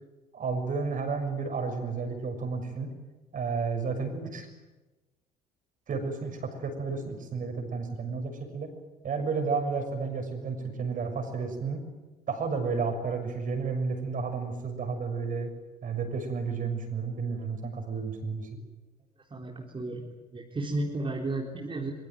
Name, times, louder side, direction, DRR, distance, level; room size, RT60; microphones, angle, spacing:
voice 1, 0.3-2.9 3.3-4.5 5.9-8.7 9.0-11.9 12.3-15.5 15.8-18.6, right 4 dB, 45° right, 6 dB, 6.6 m, -32 dB
voice 2, 19.3-20.1 20.3-21.9, right 2 dB, 25° right, -1 dB, 4.0 m, -33 dB
24.5 x 23.5 x 9.4 m, 1.1 s
figure-of-eight pair, 50°, 20 cm